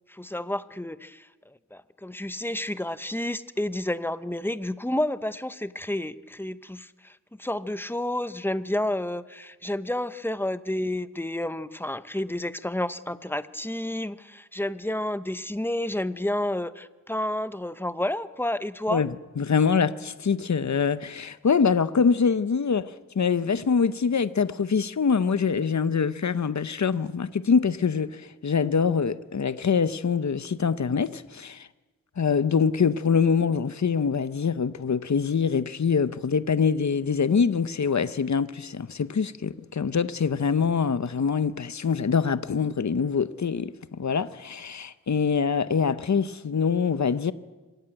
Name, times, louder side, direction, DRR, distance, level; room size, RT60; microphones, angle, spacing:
voice 1, 0.1-1.3 1.7-19.0, left 1 dB, 5° left, 0.8 m, -30 dB
voice 2, 19.4-22.8 23.2-31.7 32.2-47.3, left 6 dB, 55° left, 0.8 m, -24 dB
25.5 x 15.0 x 9.1 m
wide cardioid pair, 80°, 33 cm